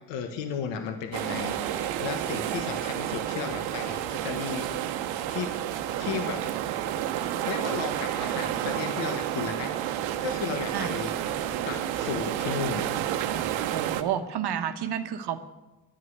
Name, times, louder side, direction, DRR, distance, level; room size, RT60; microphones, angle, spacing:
voice 1, 0.1-4.7 5.3-5.5 6.0-6.5 7.4-11.1 11.6-12.8, left 7 dB, 80° left, 6 dB, 1.4 m, -34 dB
sound 1, 1.1-14.0, right 11 dB, 85° right, 0.9 m, -30 dB
sound 2, 9.0-13.8, left 1 dB, 25° left, 3.1 m, -54 dB
voice 2, 13.7-15.4, right 9 dB, 60° right, 8 dB, 1.1 m, -30 dB
10.5 x 9.7 x 7.9 m, 1.1 s
supercardioid pair, 65°, 44 cm